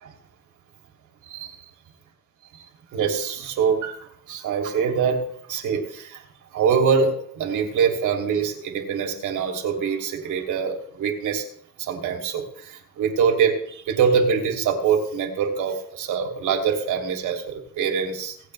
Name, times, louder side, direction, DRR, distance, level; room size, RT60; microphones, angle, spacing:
voice 1, 2.9-4.0 4.3-5.2 5.5-6.2 6.5-11.4 11.8-18.5, right 6 dB, 80° right, 3 dB, 2.8 m, -24 dB
25.0 x 8.8 x 3.3 m, 0.67 s
cardioid pair, 90°, 30 cm